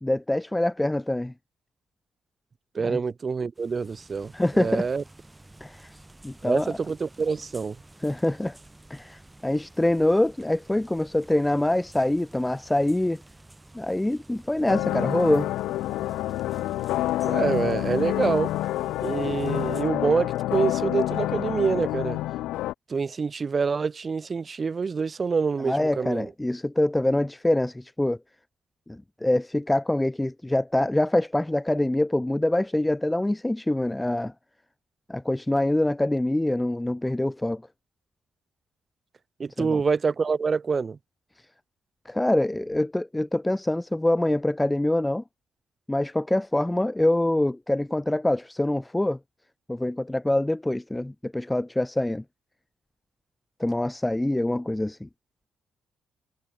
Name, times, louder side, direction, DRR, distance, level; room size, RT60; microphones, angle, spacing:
voice 1, 0.0-1.3 2.8-3.0 4.3-4.9 5.6-5.9 6.2-6.8 8.0-8.6 8.9-13.2 13.7-15.5 25.7-28.2 28.9-34.3 35.1-37.6 39.6-39.8 42.1-45.2 45.9-49.2 49.7-52.2 53.6-55.1, left 1 dB, 10° left, 0.5 m, -25 dB
voice 2, 2.7-5.0 6.4-7.7 17.2-18.5 19.0-22.2 22.9-26.3 39.4-41.0, right 5 dB, 35° right, 1.7 m, -26 dB
sound 1, 3.6-19.8, right 2 dB, 15° right, 4.1 m, -51 dB
Kölner Dom Plenum, 14.7-22.7, left 15 dB, 90° left, 0.5 m, -28 dB
cardioid pair, 90°, 0 cm